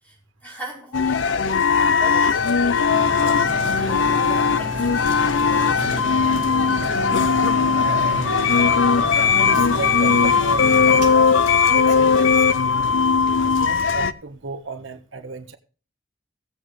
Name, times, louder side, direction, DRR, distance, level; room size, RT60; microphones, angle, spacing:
voice 1, 0.0-6.4, right 1 dB, 10° left, 5.0 m, -41 dB
sound 1, 0.9-14.1, left 5 dB, 80° left, 0.6 m, -18 dB
sound 2, 2.9-12.4 13.0-13.1 13.5-13.6, right 1 dB, 65° right, 1.6 m, -32 dB
voice 2, 7.8-8.7 9.4-11.2 11.7-12.5 13.4-15.6, right 3 dB, 85° right, 1.2 m, -34 dB
17.0 x 8.2 x 3.2 m
head